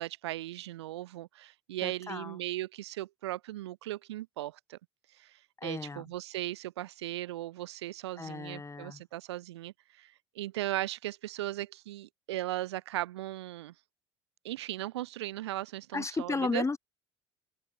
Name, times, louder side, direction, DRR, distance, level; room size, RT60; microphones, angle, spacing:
voice 1, 0.0-4.8 5.1-13.7 14.4-16.6, right 15 dB, 75° right, 1.6 m, -37 dB
voice 2, 1.8-2.4 5.6-6.1 8.2-9.0 15.9-16.8, left 3 dB, 20° left, 4.9 m, -34 dB
figure-of-eight pair, 60°, 14 cm